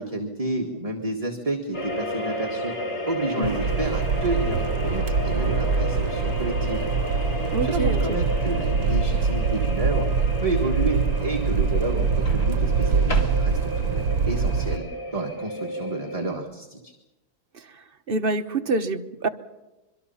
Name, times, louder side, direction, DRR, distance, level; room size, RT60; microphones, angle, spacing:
voice 1, 0.0-2.7 3.1-6.9 7.3-10.1 10.4-14.9 15.1-16.9, right 2 dB, 20° right, 1 dB, 1.8 m, -30 dB
sound 1, 1.7-16.4, left 1 dB, 65° left, 4.4 m, -33 dB
sound 2, 3.4-14.8, right 5 dB, 65° right, 1.5 m, -24 dB
Microwave oven, 3.5-4.2 6.2-6.4 12.3-13.9, left 1 dB, 50° left, 3.3 m, -38 dB
voice 2, 7.5-8.2 17.5-19.3, right 2 dB, 40° right, 7 dB, 1.1 m, -27 dB
25.5 x 24.0 x 5.6 m, 1.0 s
omnidirectional pair, 1.8 m